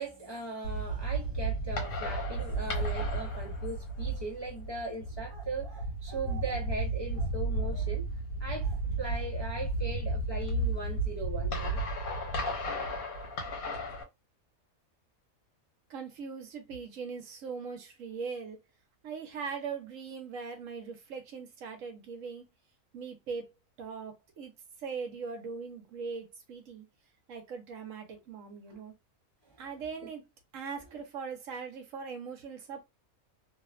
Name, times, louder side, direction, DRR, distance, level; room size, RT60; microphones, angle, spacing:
voice 1, 0.0-8.1 8.4-11.8 28.7-28.8 29.5-29.6 30.0-30.1, right 2 dB, 30° left, 0.5 m, -39 dB
sound 1, 0.6-14.0, right 2 dB, 80° left, 1.4 m, -33 dB
voice 2, 15.9-18.6 19.0-22.5 22.9-23.5 23.8-24.5 24.8-26.9 27.3-28.9 29.6-30.2 30.5-32.8, right 5 dB, 70° right, 1.1 m, -40 dB
2.9 x 2.1 x 2.4 m
omnidirectional pair, 1.5 m